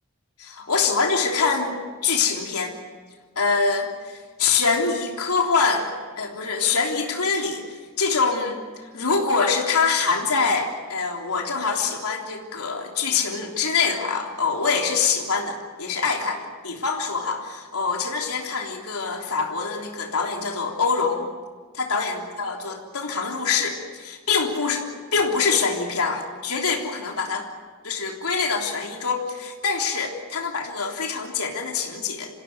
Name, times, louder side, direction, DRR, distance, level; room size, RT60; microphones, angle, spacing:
voice 1, 0.4-2.7 3.4-5.9 6.2-7.6 8.0-8.6 8.9-21.3 21.8-24.8 25.1-27.5 27.8-32.3, left 5 dB, 90° left, 1 dB, 3.5 m, -24 dB
26.5 x 16.5 x 9.6 m, 1.5 s
head